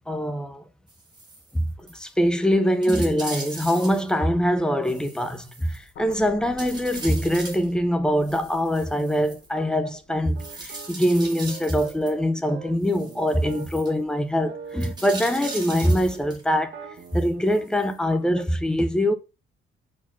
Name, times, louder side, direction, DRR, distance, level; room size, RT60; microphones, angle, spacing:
voice 1, 0.1-0.6 1.5-16.8 17.1-19.1, equal, 5° left, 0.6 m, -23 dB
sound 1, 0.9-1.6 1.9-2.0 2.4-2.5 2.8-4.2 4.8-6.1 6.6-7.7 8.2-9.5 10.4-12.1 12.8-13.9 14.8-16.4 17.0-17.9 18.4-18.5, right 2 dB, 20° right, 1.5 m, -39 dB
sound 2, 6.0-12.2 12.6-12.9, left 5 dB, 55° left, 0.8 m, -48 dB
sound 3, 9.5-16.2 16.6-18.5, right 5 dB, 55° right, 1.2 m, -42 dB
4.8 x 4.1 x 5.8 m
cardioid pair, 175°, 21 cm